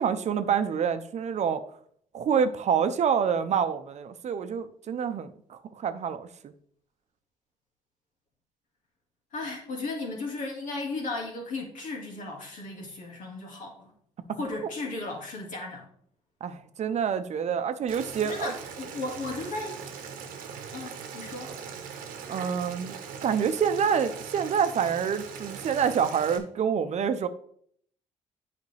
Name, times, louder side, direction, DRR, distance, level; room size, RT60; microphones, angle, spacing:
voice 1, 0.0-1.6 2.1-6.5 14.3-14.7 16.4-18.5 22.3-27.3, right 7 dB, 55° right, 10 dB, 0.7 m, -27 dB
voice 2, 9.3-13.9 14.4-15.9 18.2-19.8 20.7-21.6, left 3 dB, 70° left, 1 dB, 2.0 m, -35 dB
Boiling, 17.9-26.4, right 7 dB, 85° right, 0.9 m, -40 dB
8.2 x 5.1 x 3.3 m, 0.63 s
supercardioid pair, 65°, 14 cm